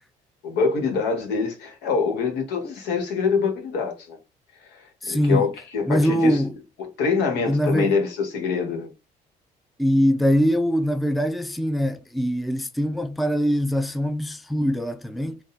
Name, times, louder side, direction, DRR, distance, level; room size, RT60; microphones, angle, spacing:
voice 1, 0.4-4.2 4.7-6.4 6.8-8.9, left 5 dB, 90° left, 1.4 m, -25 dB
voice 2, 5.0-5.5 5.9-6.5 7.5-7.9 9.8-15.4, equal, ahead, 0.4 m, -22 dB
3.7 x 2.3 x 4.1 m
cardioid pair, 110°, 17 cm